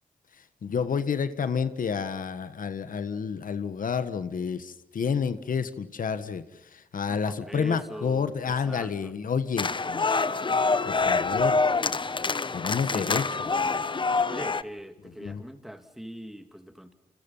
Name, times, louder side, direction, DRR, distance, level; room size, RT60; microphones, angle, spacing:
voice 1, 0.3-10.0 10.8-11.6 12.5-13.5 15.2-15.4, left 6 dB, 75° left, 12 dB, 1.5 m, -30 dB
voice 2, 7.1-9.1 12.9-13.8 14.3-16.9, equal, ahead, 8 dB, 2.8 m, -41 dB
sound 1, 9.6-14.6, left 4 dB, 35° left, 0.9 m, -26 dB
29.5 x 28.0 x 5.6 m, 0.83 s
wide cardioid pair, 85°, 14 cm